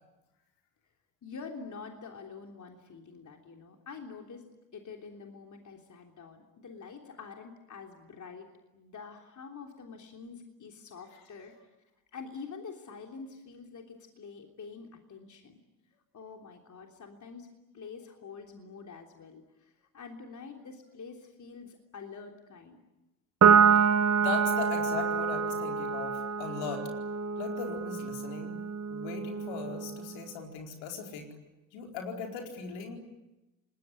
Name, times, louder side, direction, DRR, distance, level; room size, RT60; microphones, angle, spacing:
voice 1, 1.2-4.5 4.7-8.5 8.7-11.7 12.1-15.6 16.1-17.5 17.7-22.8, left 5 dB, 35° left, 2 dB, 3.4 m, -46 dB
Piano, 23.4-30.1, right 7 dB, 30° right, 1.6 m, -26 dB
voice 2, 24.2-26.8 27.4-28.6 28.9-31.3 31.7-33.0, left 6 dB, 65° left, 2 dB, 4.7 m, -39 dB
27.5 x 20.5 x 9.9 m, 1.0 s
figure-of-eight pair, 55°, 48 cm